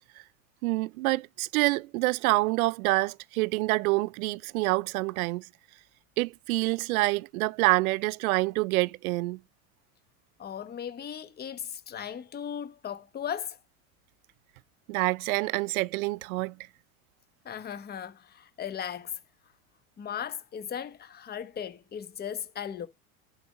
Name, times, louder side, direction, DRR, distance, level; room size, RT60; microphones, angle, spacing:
voice 1, 0.6-5.5 6.2-9.4 14.9-16.6, right 22 dB, 80° right, 0.5 m, -27 dB
voice 2, 10.4-13.6 17.4-19.2 20.0-22.9, left 8 dB, 25° left, 1.1 m, -37 dB
11.5 x 4.8 x 4.0 m
supercardioid pair, 120°, 42 cm